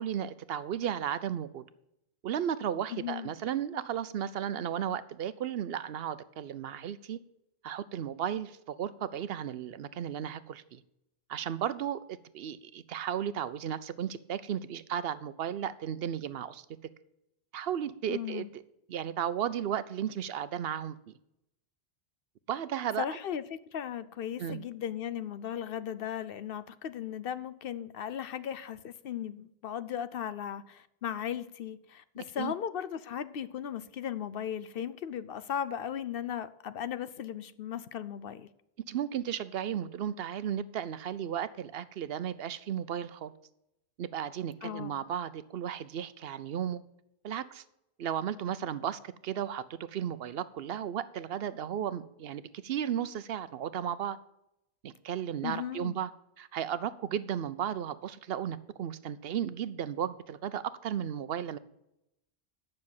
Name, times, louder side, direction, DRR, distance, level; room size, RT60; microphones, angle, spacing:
voice 1, 0.0-1.6 2.2-7.2 7.6-10.8 11.3-16.7 17.5-18.6 18.9-21.2 22.5-23.1 24.4-24.6 32.4-32.5 38.9-43.3 44.0-46.8 47.2-47.6 48.0-54.2 54.8-56.1 56.4-61.6, right 9 dB, 70° right, 0.8 m, -34 dB
voice 2, 2.9-3.3 18.1-18.5 23.0-38.5 44.6-45.0 55.4-56.0, left 9 dB, 65° left, 0.8 m, -37 dB
9.6 x 6.5 x 7.2 m
omnidirectional pair, 1.1 m